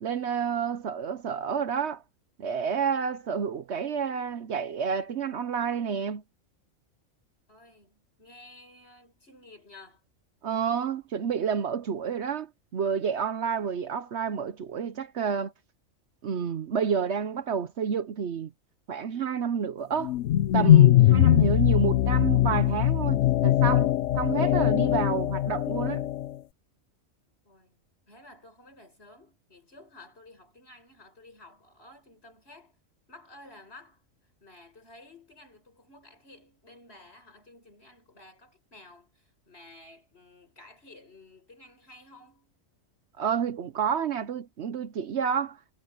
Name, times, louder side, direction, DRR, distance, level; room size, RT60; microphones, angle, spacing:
voice 1, 0.0-2.0 2.4-6.2 10.4-15.5 16.2-18.5 18.9-20.2 20.5-26.1 43.2-45.7, right 7 dB, 60° right, 1.0 m, -29 dB
voice 2, 7.5-10.0 27.4-27.8 28.1-32.8 33.1-34.1 34.4-42.6, left 2 dB, 50° left, 6.4 m, -53 dB
sound 1, 20.0-26.3, left 13 dB, 70° left, 0.9 m, -21 dB
omnidirectional pair, 1.4 m